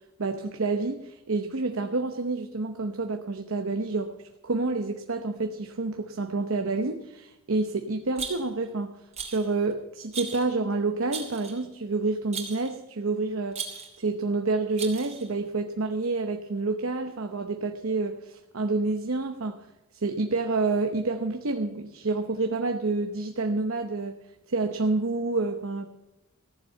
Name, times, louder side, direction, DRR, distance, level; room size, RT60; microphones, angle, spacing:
voice 1, 0.2-4.1 4.4-13.6 14.0-19.6 19.9-24.2 24.5-25.9, right 3 dB, 70° right, 6 dB, 0.8 m, -28 dB
Rattle, 8.2-8.7 9.1-9.5 10.1-10.5 11.1-11.6 12.3-12.7 13.5-14.0 14.8-15.3, right 5 dB, 30° right, 2.8 m, -37 dB
15.0 x 7.1 x 8.7 m, 0.94 s
head